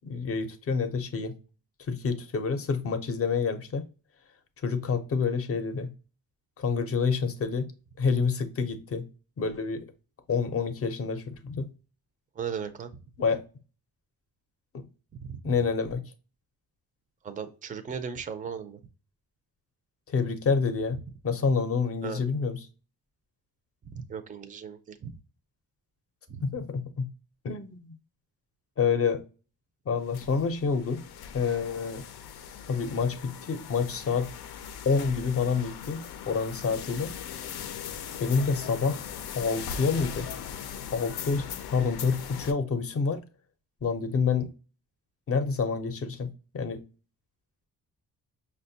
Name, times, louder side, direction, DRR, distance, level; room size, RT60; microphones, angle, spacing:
voice 1, 0.0-1.3 1.9-3.8 4.6-5.9 6.6-7.7 8.0-9.0 9.4-9.9 10.3-11.7 13.2-13.4 14.7-14.8 15.4-16.0 20.1-21.0 21.2-22.6 26.4-27.1 27.4-27.9 28.8-29.2 29.9-31.0 31.3-32.0 32.7-34.3 34.9-37.1 38.2-39.0 39.3-40.3 40.9-43.2 43.8-44.5 45.3-46.8, left 5 dB, 40° left, 9 dB, 0.6 m, -28 dB
voice 2, 12.4-13.0 15.1-15.5 17.2-18.8 22.0-22.2 23.9-25.2 26.3-26.4, right 7 dB, 20° right, 10 dB, 0.4 m, -37 dB
sound 1, 30.0-42.5, left 8 dB, 80° left, 0.5 m, -40 dB
5.7 x 2.2 x 2.6 m, 0.34 s
cardioid pair, 135°, 38 cm